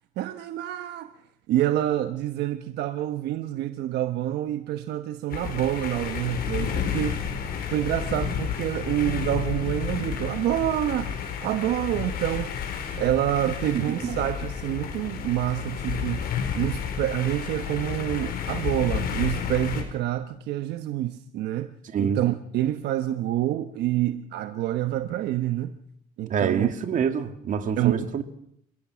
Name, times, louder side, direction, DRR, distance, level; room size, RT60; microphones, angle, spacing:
voice 1, 0.2-1.1 1.5-7.2 7.7-11.2 11.4-12.5 13.0-16.3 16.5-25.8 26.2-26.7 27.8-28.1, right 13 dB, 80° right, 1.1 m, -27 dB
sound 1, 5.3-19.8, left 7 dB, 65° left, 4.7 m, -31 dB
voice 2, 21.8-22.2 26.3-28.2, right 7 dB, 50° right, 2.3 m, -26 dB
29.5 x 16.5 x 6.3 m
cardioid pair, 110°, 17 cm